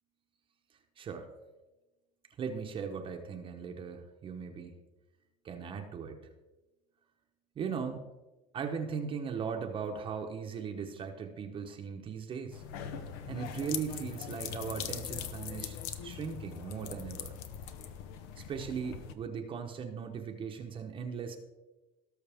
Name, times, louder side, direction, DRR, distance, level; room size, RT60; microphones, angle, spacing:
voice 1, 1.0-1.3 2.4-4.8 5.4-6.2 7.6-8.0 8.5-12.6 13.3-17.4 18.4-21.4, right 6 dB, 30° right, 3 dB, 0.9 m, -38 dB
sound 1, 12.5-19.1, left 9 dB, 70° left, 0.9 m, -41 dB
18.0 x 6.4 x 3.5 m, 1.1 s
cardioid pair, 145°, 17 cm